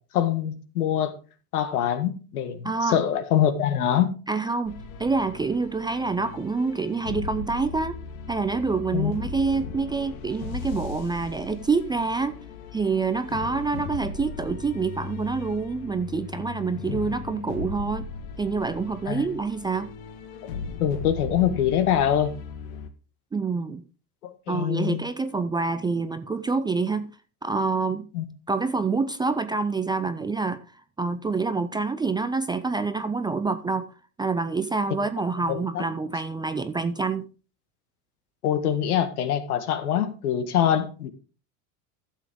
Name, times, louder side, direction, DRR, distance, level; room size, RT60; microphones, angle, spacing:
voice 1, 0.1-1.1 1.5-4.1 8.9-9.1 16.9-17.0 19.1-19.2 20.8-22.3 24.2-25.0 28.1-28.2 35.5-35.8 38.4-41.1, left 10 dB, 80° left, 1.7 m, -24 dB
voice 2, 2.6-3.0 4.3-7.9 8.3-12.4 12.7-18.1 18.4-19.9 23.3-23.8 24.5-27.1 27.4-28.1 28.5-30.6 31.0-33.9 34.2-37.2, right 4 dB, 10° right, 0.4 m, -27 dB
sound 1, 4.7-22.9, left 5 dB, 65° left, 1.4 m, -38 dB
12.5 x 7.2 x 3.7 m
hypercardioid pair, 100°, 44 cm